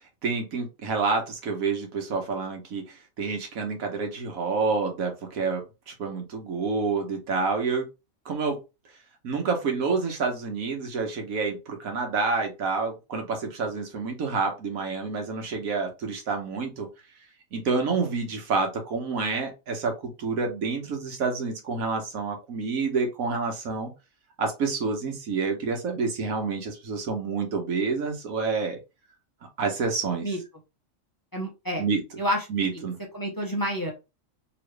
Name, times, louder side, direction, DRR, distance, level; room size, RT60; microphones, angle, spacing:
voice 1, 0.2-2.8 3.2-7.8 8.2-8.6 9.2-16.9 17.5-23.9 24.4-28.8 29.6-30.3 31.8-32.0 32.5-33.0, right 4 dB, 90° right, 3 dB, 1.5 m, -28 dB
voice 2, 31.3-31.8 32.2-32.5 32.7-32.8 33.1-33.9, equal, 20° left, 1 dB, 0.7 m, -28 dB
3.1 x 3.0 x 3.1 m, 0.26 s
omnidirectional pair, 1.4 m